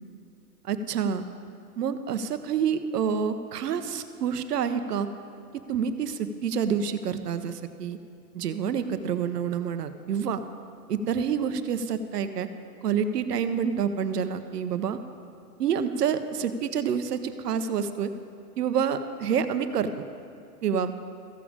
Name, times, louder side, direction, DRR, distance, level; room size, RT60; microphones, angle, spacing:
voice 1, 0.6-1.2 1.8-5.1 5.5-8.0 8.3-10.4 10.9-12.5 12.8-15.0 15.6-18.1 18.6-20.0 20.6-20.9, right 7 dB, 75° right, 10 dB, 0.9 m, -28 dB
14.5 x 7.1 x 5.0 m, 2.4 s
hypercardioid pair, 135°, 48 cm